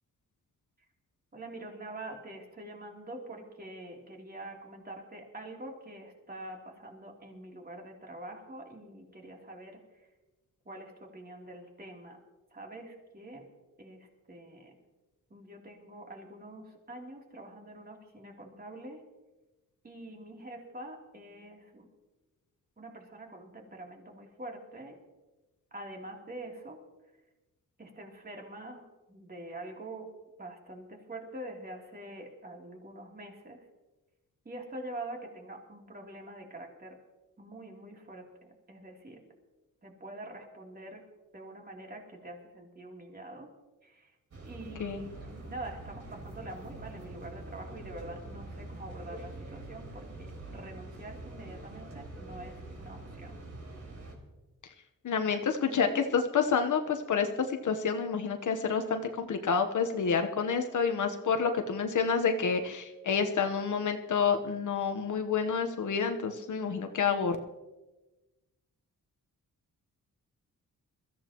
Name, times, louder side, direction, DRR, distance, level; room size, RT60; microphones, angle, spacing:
voice 1, 1.3-9.8 10.6-12.2 12.5-13.5 13.8-14.8 15.3-19.0 19.8-21.9 22.8-25.0 25.7-26.8 27.8-30.1 30.4-33.6 34.4-37.0 37.4-38.3 38.7-39.2 39.8-41.0 41.3-43.5 43.8-44.1 44.4-53.4, right 1 dB, 25° right, 0 dB, 3.2 m, -45 dB
sound 1, 44.3-54.1, right 2 dB, 50° right, 4.3 m, -45 dB
voice 2, 55.0-67.4, left 6 dB, 60° left, 6 dB, 1.2 m, -29 dB
22.5 x 14.5 x 3.0 m, 1.1 s
cardioid pair, 110°, 34 cm